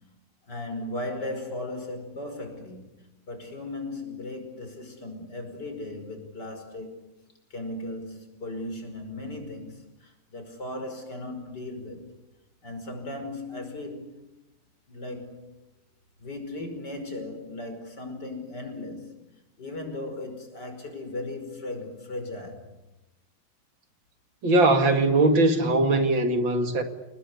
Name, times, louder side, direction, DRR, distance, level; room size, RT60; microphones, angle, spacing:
voice 1, 0.5-7.0 7.5-12.1 12.6-14.3 14.9-15.4 16.2-19.3 19.6-22.6, left 2 dB, 55° left, 6.0 m, -37 dB
voice 2, 24.4-26.8, right 2 dB, 70° right, 2.9 m, -21 dB
29.5 x 20.0 x 9.9 m
omnidirectional pair, 2.2 m